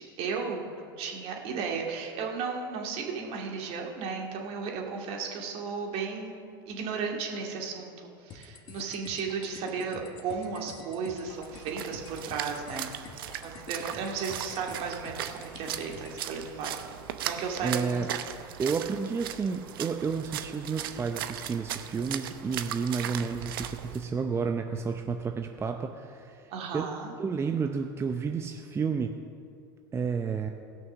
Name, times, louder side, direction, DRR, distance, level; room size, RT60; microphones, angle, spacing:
voice 1, 0.0-7.9 8.2-13.1 13.4-16.7 17.2-18.0 23.0-23.1 26.5-27.1, right 5 dB, 55° right, 0 dB, 2.3 m, -35 dB
sound 1, 8.3-16.3, left 5 dB, 40° left, 1.4 m, -49 dB
Splash splatter, 11.3-24.0, right 10 dB, 75° right, 0.8 m, -38 dB
voice 2, 17.6-18.1 18.6-26.9 27.2-29.2 29.9-30.5, right 5 dB, 20° right, 5 dB, 0.7 m, -31 dB
17.0 x 6.2 x 6.2 m, 2.5 s
hypercardioid pair, 90°, 12 cm